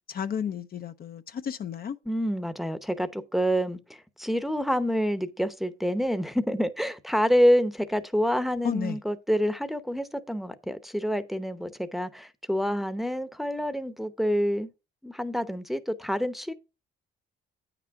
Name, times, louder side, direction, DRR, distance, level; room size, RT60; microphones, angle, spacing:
voice 1, 0.1-2.0 8.6-9.0, left 8 dB, 50° left, 0.6 m, -32 dB
voice 2, 2.1-14.7 15.0-16.5, equal, ahead, 0.8 m, -27 dB
8.9 x 6.0 x 4.6 m
cardioid pair, 90°, 20 cm